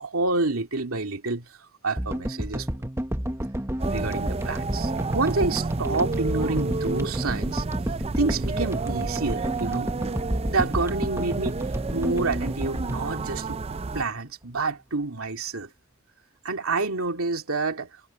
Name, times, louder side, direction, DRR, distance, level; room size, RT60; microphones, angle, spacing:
voice 1, 0.0-1.4 1.8-2.7 3.8-7.6 8.2-9.9 10.4-11.6 11.9-13.6 13.9-15.7 16.4-17.9, right 3 dB, 70° right, 2.8 m, -28 dB
sound 1, 2.0-14.3, equal, 15° right, 1.4 m, -31 dB
sound 2, 3.8-14.0, right 3 dB, 30° right, 0.5 m, -31 dB
head